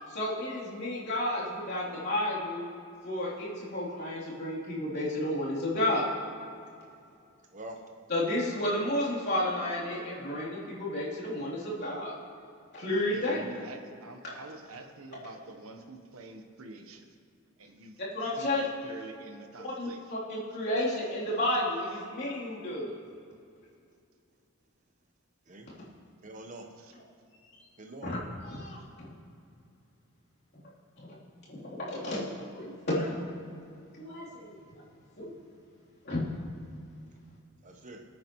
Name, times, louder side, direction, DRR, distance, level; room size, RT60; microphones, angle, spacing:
voice 1, 0.0-2.6 3.0-6.0 8.1-12.1 12.7-13.5 18.1-18.6 19.6-22.9 28.0-29.1 31.0-31.2 31.5-33.2 34.0-34.8 35.2-35.3 36.0-36.3, left 1 dB, 50° left, -8 dB, 3.4 m, -32 dB
voice 2, 7.5-7.8 13.2-13.6 18.4-18.6 25.5-25.7 26.2-26.7 27.8-28.1 37.6-38.0, right 2 dB, 35° right, 4 dB, 1.1 m, -45 dB
voice 3, 13.0-17.2 17.6-18.0 18.3-20.0 26.8-26.9, right 2 dB, 85° right, 6 dB, 1.1 m, -47 dB
21.5 x 8.8 x 3.1 m, 2.4 s
head